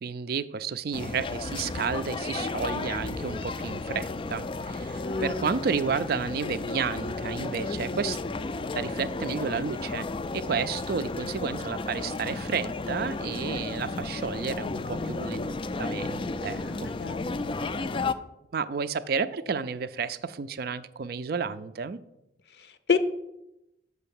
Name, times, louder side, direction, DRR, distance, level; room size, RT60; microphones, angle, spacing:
voice 1, 0.0-8.2 8.7-10.1 10.3-15.5 15.8-16.9 18.5-22.0, right 5 dB, 55° right, 13 dB, 0.4 m, -31 dB
sound 1, 0.9-18.1, left 3 dB, 30° left, 0.3 m, -33 dB
voice 2, 5.0-5.5 16.4-17.3 22.6-23.0, left 5 dB, 60° left, 11 dB, 0.6 m, -30 dB
6.5 x 5.6 x 7.0 m, 0.89 s
head